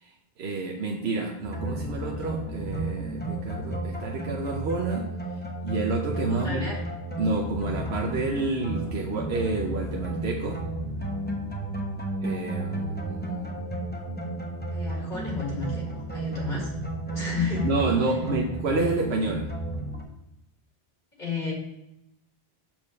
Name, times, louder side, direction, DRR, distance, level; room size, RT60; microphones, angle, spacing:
voice 1, 0.0-5.1 5.6-6.7 7.2-10.6 12.2-13.6 17.6-19.5, right 3 dB, 90° right, 1 dB, 1.1 m, -29 dB
sound 1, 1.4-20.0, right 1 dB, 10° left, 1.0 m, -33 dB
voice 2, 6.3-6.8 14.7-16.7 17.1-17.7 18.1-18.2 21.2-21.5, left 4 dB, 50° left, -3 dB, 1.9 m, -32 dB
7.0 x 4.6 x 5.2 m, 0.85 s
omnidirectional pair, 1.0 m